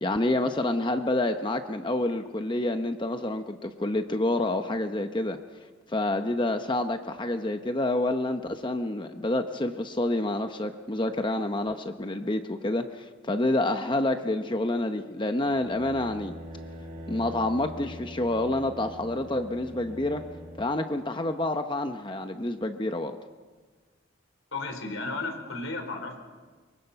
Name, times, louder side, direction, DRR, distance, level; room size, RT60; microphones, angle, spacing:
voice 1, 0.0-5.4 5.9-16.4 17.1-20.2 20.6-23.2, left 2 dB, 25° left, 7 dB, 0.8 m, -28 dB
sound 1, 15.4-20.7, equal, 40° right, 6.2 m, -43 dB
voice 2, 24.5-26.2, left 3 dB, 90° left, 4 dB, 4.6 m, -34 dB
24.5 x 23.0 x 5.7 m, 1.4 s
head